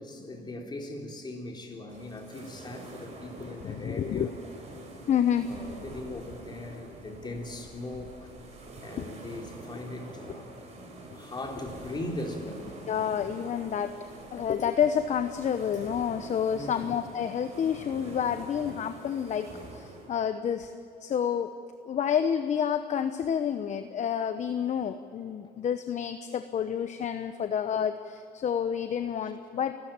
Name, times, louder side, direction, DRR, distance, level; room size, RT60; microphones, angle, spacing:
voice 1, 0.0-4.3 5.5-8.3 8.8-10.5 10.9-12.7 16.5-16.9 29.2-29.3, left 2 dB, 25° left, 2 dB, 3.8 m, -39 dB
sound 1, 1.9-20.1, right 2 dB, 40° right, 5.5 m, -46 dB
voice 2, 3.4-4.3 5.1-5.5 9.0-9.1 12.9-13.9 14.3-20.7 21.0-21.5 21.9-29.7, left 8 dB, 45° left, 10 dB, 0.9 m, -29 dB
29.5 x 13.0 x 8.9 m, 2.9 s
cardioid pair, 110°, 17 cm